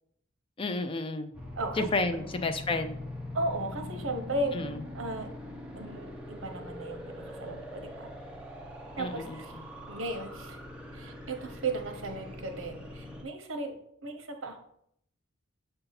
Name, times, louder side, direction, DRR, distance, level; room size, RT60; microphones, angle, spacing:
voice 1, 0.6-1.3 1.8-3.0 4.5-4.8 9.0-9.4, left 3 dB, 25° left, 8 dB, 0.4 m, -31 dB
sound 1, 1.3-13.2, left 1 dB, 5° right, 0.8 m, -43 dB
voice 2, 3.3-5.3 5.7-8.1 9.0-9.5 9.9-10.6 10.9-13.8 14.0-14.6, right 2 dB, 70° right, 5 dB, 0.9 m, -35 dB
6.7 x 2.7 x 5.7 m, 0.72 s
head